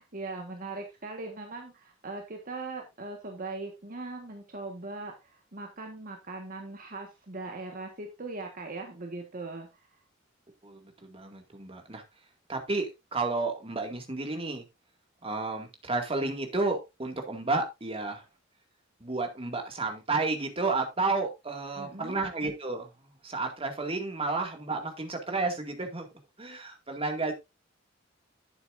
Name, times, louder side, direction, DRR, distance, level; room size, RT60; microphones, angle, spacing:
voice 1, 0.0-9.9 21.8-22.2, right 3 dB, 45° right, 3 dB, 1.5 m, -40 dB
voice 2, 10.6-12.0 12.5-14.6 15.2-18.2 19.0-22.9 23.2-26.1 26.4-27.3, right 3 dB, 30° right, 4 dB, 2.1 m, -31 dB
11.0 x 8.7 x 2.6 m, 0.23 s
head